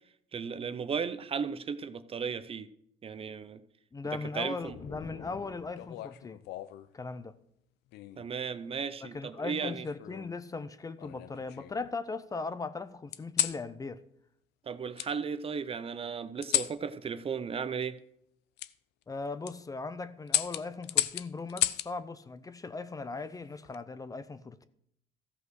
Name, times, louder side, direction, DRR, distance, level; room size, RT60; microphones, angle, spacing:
voice 1, 0.3-2.7 3.0-3.6 4.0-4.8 8.2-9.9 14.6-18.0, right 6 dB, 35° right, 0.6 m, -35 dB
voice 2, 3.9-6.4 6.9-7.4 9.0-14.0 19.1-24.7, left 3 dB, 20° left, 0.6 m, -38 dB
sound 1, 4.6-6.3, left 5 dB, 50° left, 1.2 m, -48 dB
sound 2, 5.8-6.9 7.9-8.3 9.6-10.4 11.0-11.9 13.1-13.6 15.0-15.1 16.4-16.8 18.6-18.7 19.3-19.5 20.3-21.9 23.4-23.8, left 14 dB, 80° left, 0.5 m, -33 dB
14.0 x 5.6 x 6.3 m
cardioid pair, 110°, 17 cm